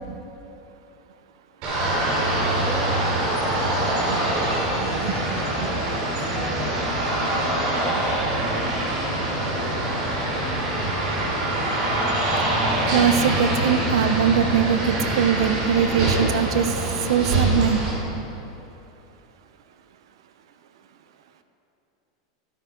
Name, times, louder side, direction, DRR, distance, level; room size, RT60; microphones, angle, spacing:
sound 1, 1.6-17.9, right 1 dB, 40° right, 3.1 m, -24 dB
voice 1, 2.2-3.1 3.8-4.7 5.2-5.7 6.3-7.7, left 2 dB, 20° left, -7 dB, 2.7 m, -39 dB
voice 2, 4.7-5.7 12.9-16.7 17.1-17.8, right 8 dB, 80° right, 10 dB, 0.7 m, -22 dB
12.5 x 12.0 x 3.9 m, 3.0 s
supercardioid pair, 160°, 3 cm